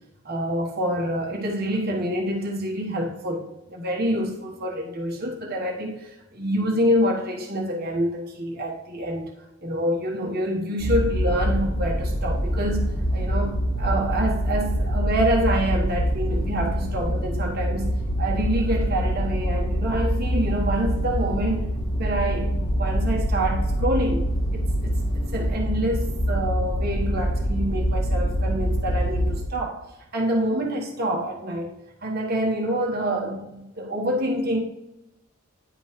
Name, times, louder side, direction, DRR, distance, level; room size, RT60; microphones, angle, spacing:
voice 1, 0.2-9.3 9.6-12.9 13.1-17.9 18.2-21.7 22.0-29.8 30.1-31.7 32.0-34.6, right 1 dB, 45° right, 0 dB, 1.2 m, -27 dB
sound 1, 10.8-29.4, equal, 20° left, 1.7 m, -25 dB
9.9 x 5.3 x 3.1 m, 0.96 s
head